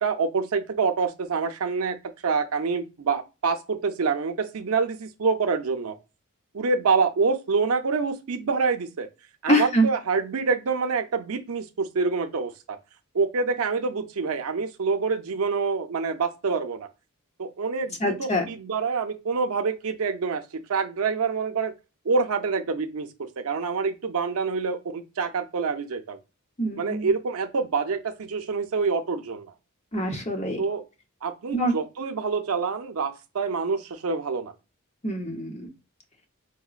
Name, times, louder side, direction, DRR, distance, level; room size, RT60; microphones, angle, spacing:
voice 1, 0.0-6.0 6.5-9.1 9.4-12.8 13.1-16.9 17.4-21.7 22.0-26.2 26.8-29.5 30.6-30.8 31.2-34.5, right 4 dB, 70° right, 0.6 m, -26 dB
voice 2, 9.5-9.9 18.0-18.4 26.6-27.1 29.9-30.6 31.5-31.7 35.0-35.7, equal, 30° left, 0.8 m, -24 dB
4.8 x 2.1 x 2.4 m
head